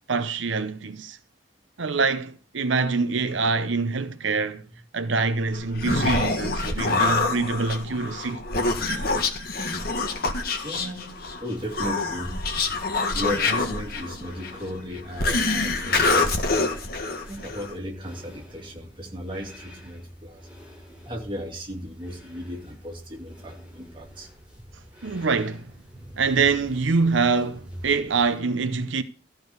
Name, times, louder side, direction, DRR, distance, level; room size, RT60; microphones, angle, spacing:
voice 1, 0.1-1.2 1.8-4.6 4.9-8.5 25.0-25.7 26.2-29.0, right 4 dB, 80° right, 0.7 m, -25 dB
Human voice, 5.5-17.8, left 3 dB, 50° left, 1.7 m, -26 dB
voice 2, 10.6-12.4 13.1-16.8 17.2-20.4 21.0-24.3, equal, 25° right, 2.7 m, -36 dB
sound 1, 11.5-28.4, equal, 5° right, 6.6 m, -47 dB
14.0 x 4.9 x 8.0 m
head